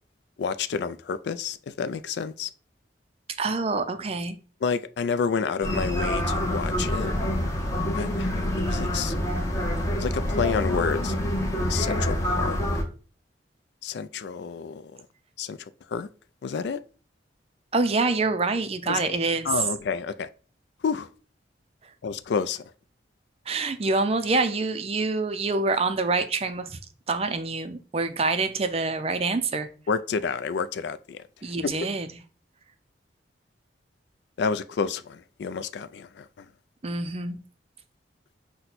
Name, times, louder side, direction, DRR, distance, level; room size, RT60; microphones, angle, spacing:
voice 1, 0.4-2.5 4.6-7.1 7.9-9.1 10.0-11.1 11.7-12.6 13.8-15.0 15.4-15.6 15.9-16.1 16.4-16.8 18.9-19.1 19.4-20.3 20.8-21.1 22.0-22.6 29.9-31.2 34.4-36.5, left 5 dB, 65° left, 0.3 m, -29 dB
voice 2, 3.4-4.4 17.7-19.5 23.5-26.8 27.1-29.7 31.4-32.1 36.8-37.4, right 3 dB, 30° right, 0.4 m, -26 dB
sound 1, 5.6-12.8, left 1 dB, 15° left, 0.7 m, -26 dB
5.9 x 2.2 x 4.0 m
head